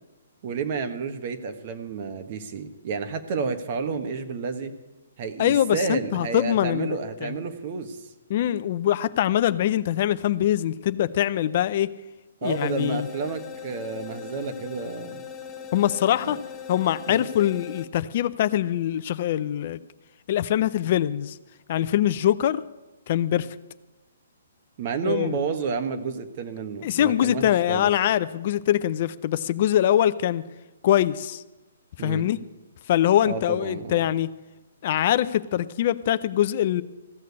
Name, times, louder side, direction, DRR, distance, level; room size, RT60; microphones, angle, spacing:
voice 1, 0.4-4.7 5.2-8.1 12.4-15.2 16.3-16.4 17.1-17.3 24.8-27.9 32.0-32.2 33.2-34.0, right 5 dB, 45° right, 8 dB, 1.3 m, -30 dB
voice 2, 5.4-7.3 8.3-11.9 12.4-13.1 15.7-16.4 16.7-19.8 20.3-21.4 21.7-22.6 23.1-23.5 25.0-25.4 26.8-30.4 30.8-31.4 32.0-32.4 32.9-34.3 34.8-36.8, left 11 dB, 45° left, 14 dB, 0.5 m, -23 dB
sound 1, 12.4-17.9, left 7 dB, 15° left, 1.2 m, -39 dB
15.0 x 6.6 x 9.6 m, 1.1 s
hypercardioid pair, 140°, 0 cm